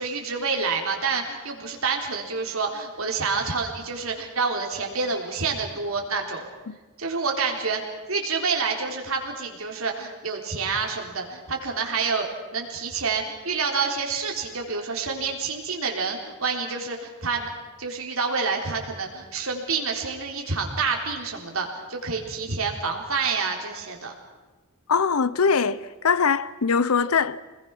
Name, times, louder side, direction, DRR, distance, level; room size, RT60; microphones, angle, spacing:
voice 1, 0.0-6.5 7.0-7.8 8.1-17.5 17.8-24.1, right 4 dB, 70° right, 3.9 m, -28 dB
voice 2, 24.9-27.4, left 5 dB, 85° left, 0.8 m, -22 dB
26.5 x 20.5 x 6.0 m
head